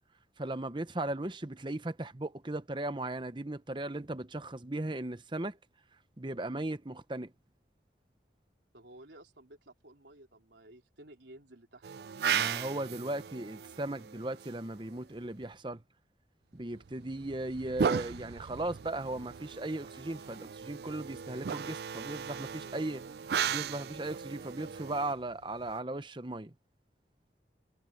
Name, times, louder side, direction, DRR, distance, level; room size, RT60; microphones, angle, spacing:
voice 1, 0.4-5.6 6.2-7.3 12.3-15.8 16.5-23.0 23.5-26.5, right 2 dB, 25° right, 0.9 m, -37 dB
voice 2, 8.7-11.9 16.6-16.9, right 1 dB, 85° right, 3.6 m, -54 dB
sound 1, 11.8-15.0 16.8-25.8, right 7 dB, 65° right, 0.4 m, -37 dB
head